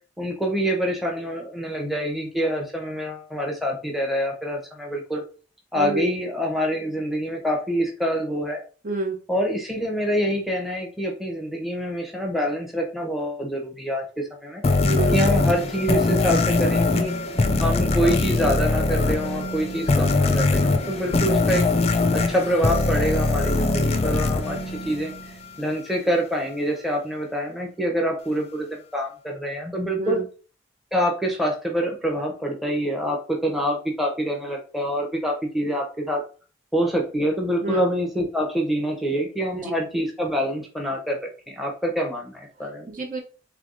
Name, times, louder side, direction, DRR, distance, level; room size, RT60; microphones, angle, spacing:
voice 1, 0.2-5.2 5.7-8.6 9.3-14.6 15.1-17.1 17.6-21.6 22.1-24.6 24.8-25.1 25.6-30.2 30.9-36.2 36.7-41.2 41.5-42.9, equal, ahead, 0 dB, 0.9 m, -26 dB
voice 2, 5.7-6.1 8.8-9.2 14.8-15.3 30.0-30.2 37.6-37.9 39.5-39.7 42.9-43.2, right 2 dB, 45° right, 3 dB, 0.9 m, -28 dB
sound 1, 14.6-25.4, left 3 dB, 35° left, 0.5 m, -22 dB
3.4 x 3.3 x 3.9 m, 0.37 s
head